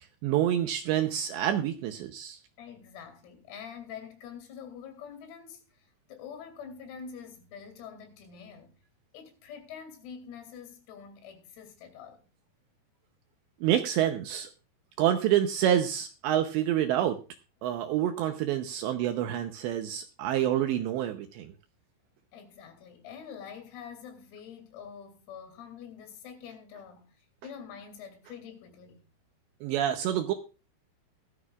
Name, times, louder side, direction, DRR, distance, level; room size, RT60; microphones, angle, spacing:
voice 1, 0.2-2.4 13.6-14.5 15.0-17.2 17.6-21.5 29.6-30.3, right 11 dB, 80° right, 2.6 m, -27 dB
voice 2, 2.6-8.7 9.1-12.3 22.3-29.0, left 7 dB, 90° left, 5.4 m, -46 dB
17.5 x 13.0 x 2.4 m
omnidirectional pair, 5.9 m